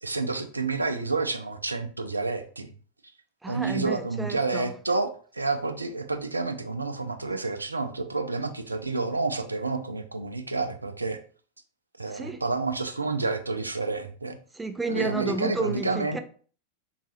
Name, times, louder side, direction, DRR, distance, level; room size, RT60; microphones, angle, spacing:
voice 1, 0.0-2.7 3.5-11.2 12.0-14.4 14.9-16.2, right 3 dB, 80° right, 0.4 m, -29 dB
voice 2, 3.4-4.7 12.1-12.4 14.5-16.2, right 3 dB, 10° right, 0.3 m, -31 dB
3.7 x 2.4 x 2.9 m
figure-of-eight pair, 90°, 0 cm